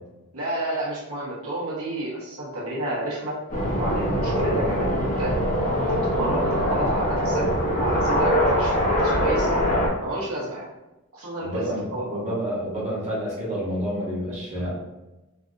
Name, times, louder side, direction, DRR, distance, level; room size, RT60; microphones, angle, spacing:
voice 1, 0.3-3.4 3.7-5.4 5.8-7.5 7.8-9.5 10.0-10.7 11.1-12.2, right 1 dB, 75° right, -6 dB, 0.9 m, -30 dB
sound 1, 3.5-9.9, equal, 35° left, 0.6 m, -23 dB
voice 2, 11.4-14.7, equal, 30° right, -6 dB, 0.8 m, -29 dB
3.3 x 2.4 x 2.5 m, 1.0 s
head